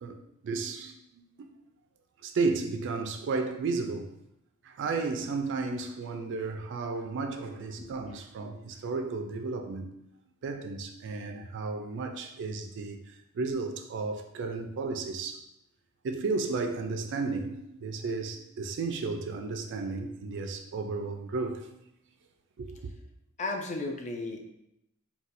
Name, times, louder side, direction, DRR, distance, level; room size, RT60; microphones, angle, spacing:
voice 1, 0.4-1.5 2.2-4.1 4.6-9.9 10.4-13.0 13.3-15.4 16.0-21.7 22.6-22.8, right 4 dB, 55° right, 0.3 m, -33 dB
voice 2, 23.4-24.5, left 2 dB, 30° left, 0.4 m, -34 dB
4.1 x 2.2 x 2.5 m
head